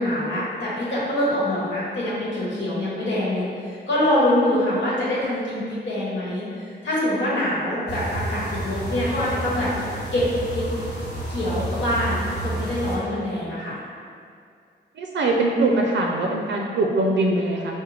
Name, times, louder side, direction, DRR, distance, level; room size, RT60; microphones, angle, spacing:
voice 1, 0.0-9.7 10.1-10.6 11.3-13.8, left 1 dB, 85° left, -7 dB, 1.1 m, -24 dB
sound 1, 7.9-13.0, right 1 dB, 60° left, 1.1 m, -30 dB
voice 2, 14.9-17.8, right 2 dB, 75° right, 0 dB, 0.4 m, -22 dB
4.9 x 2.1 x 3.2 m, 2.3 s
wide cardioid pair, 95°, 19 cm